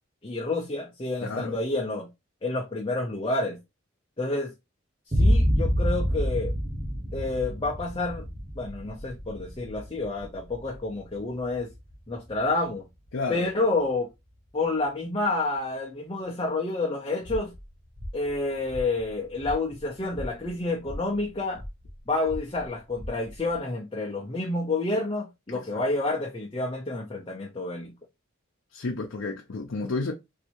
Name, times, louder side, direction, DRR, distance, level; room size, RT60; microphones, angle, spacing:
voice 1, 0.2-2.1 2.4-3.6 4.2-4.5 5.1-6.5 7.1-8.3 8.6-11.7 12.1-12.9 13.3-14.1 14.5-17.5 18.1-21.6 22.1-27.9, left 2 dB, 25° left, 0.5 m, -29 dB
voice 2, 1.2-1.6 13.1-13.5 25.5-25.8 28.7-30.1, left 3 dB, 70° left, 0.6 m, -31 dB
sound 1, 5.1-12.5, equal, 20° right, 0.6 m, -27 dB
sound 2, 17.2-23.6, equal, 60° right, 1.3 m, -41 dB
3.2 x 2.6 x 2.9 m
head